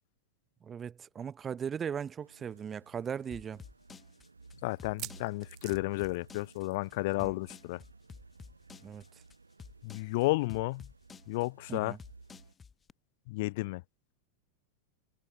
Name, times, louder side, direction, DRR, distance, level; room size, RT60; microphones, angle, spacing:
voice 1, 0.6-3.6 7.2-7.3 8.8-9.0 11.7-12.0, right 7 dB, 20° right, 1.5 m, -38 dB
sound 1, 2.2-12.5, right 3 dB, 80° right, 2.3 m, -57 dB
sound 2, 3.3-12.9, left 6 dB, 20° left, 1.7 m, -51 dB
voice 2, 4.6-7.8 9.8-10.9 11.3-12.0 13.3-13.8, left 22 dB, 50° left, 0.6 m, -32 dB
sound 3, 4.8-6.9 7.2-7.4 7.6-7.7 9.2-9.3, right 18 dB, 40° right, 0.5 m, -47 dB
figure-of-eight pair, 90°, 0 cm